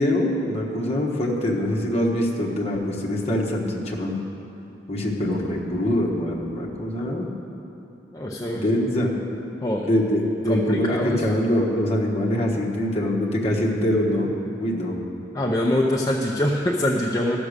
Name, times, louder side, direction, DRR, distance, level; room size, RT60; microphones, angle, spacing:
voice 1, 0.0-4.2 4.9-7.3 8.5-9.1 9.8-14.3 14.6-14.9, left 1 dB, 35° left, -2 dB, 1.4 m, -24 dB
voice 2, 8.1-8.6 9.6-9.9 10.5-11.2 15.3-17.4, left 1 dB, 20° left, -2 dB, 0.6 m, -24 dB
13.5 x 6.1 x 6.6 m, 3.0 s
head